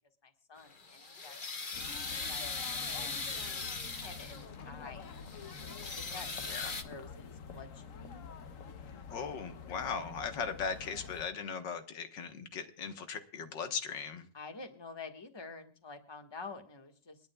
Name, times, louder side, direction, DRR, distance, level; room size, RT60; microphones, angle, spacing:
voice 1, 0.2-1.4 2.3-2.4 2.7-3.4 3.8-5.3 5.8-8.3 14.3-17.2, left 4 dB, 15° left, 1.4 m, -49 dB
sound 1, 0.6-4.6 5.0-6.8, left 4 dB, 35° left, 1.0 m, -40 dB
sound 2, 1.7-11.3, left 6 dB, 55° left, 1.2 m, -47 dB
voice 2, 9.1-14.3, left 6 dB, 85° left, 2.0 m, -38 dB
30.0 x 10.5 x 2.3 m
omnidirectional pair, 1.9 m